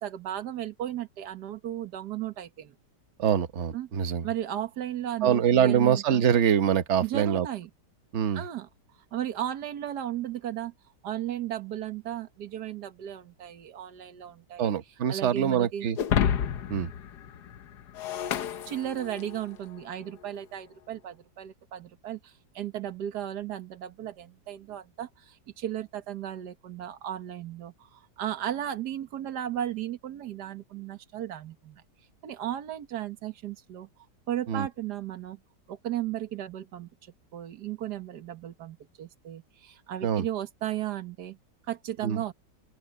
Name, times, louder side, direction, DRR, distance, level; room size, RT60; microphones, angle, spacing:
voice 1, 0.0-2.8 3.7-3.9 4.2-6.2 7.0-7.7 8.3-8.7 9.1-10.7 11.0-14.7 15.1-15.9 18.7-31.8 32.2-33.9 34.3-35.4 35.7-36.9 37.3-41.4 41.7-42.3, right 11 dB, 70° right, 1.8 m, -35 dB
voice 2, 3.2-4.3 5.2-7.5 8.1-8.4 14.6-16.0 16.7-16.9 34.5-34.7 40.0-40.2 42.0-42.2, right 9 dB, 45° right, 1.2 m, -24 dB
Shatter, 16.0-19.5, left 8 dB, 70° left, 1.4 m, -30 dB
open air
omnidirectional pair, 1.9 m